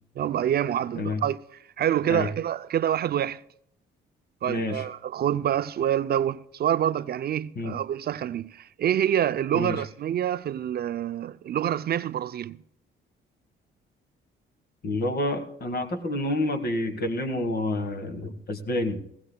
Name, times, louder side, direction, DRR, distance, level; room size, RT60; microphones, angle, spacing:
voice 1, 0.2-1.4 1.8-3.4 4.4-12.6, right 10 dB, 55° right, 0.4 m, -26 dB
voice 2, 4.5-4.9 7.5-7.7 9.5-9.8 14.8-19.0, left 1 dB, 50° left, 1.6 m, -28 dB
17.5 x 15.5 x 2.2 m
cardioid pair, 90°, 20 cm